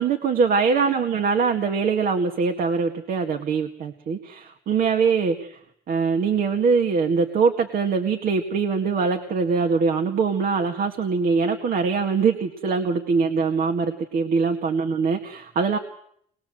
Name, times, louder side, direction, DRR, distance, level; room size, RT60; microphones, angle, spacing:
voice 1, 0.0-5.6 5.9-15.8, right 5 dB, 60° right, 4 dB, 2.0 m, -23 dB
23.5 x 21.0 x 7.8 m, 0.68 s
cardioid pair, 110°, 17 cm